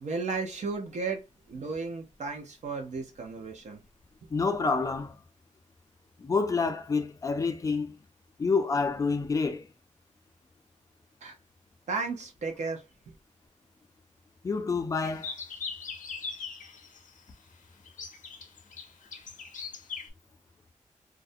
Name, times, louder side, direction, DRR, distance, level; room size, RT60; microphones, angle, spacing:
voice 1, 0.0-3.8 11.2-11.3 11.9-13.1, right 4 dB, 65° right, 0.6 m, -34 dB
voice 2, 4.3-5.2 6.2-8.0 8.4-9.7 14.4-15.3, left 4 dB, 25° left, 0.4 m, -28 dB
sound 1, 14.9-17.1 17.9-20.1, left 5 dB, 80° left, 0.5 m, -40 dB
2.4 x 2.1 x 2.6 m
wide cardioid pair, 180°, 13 cm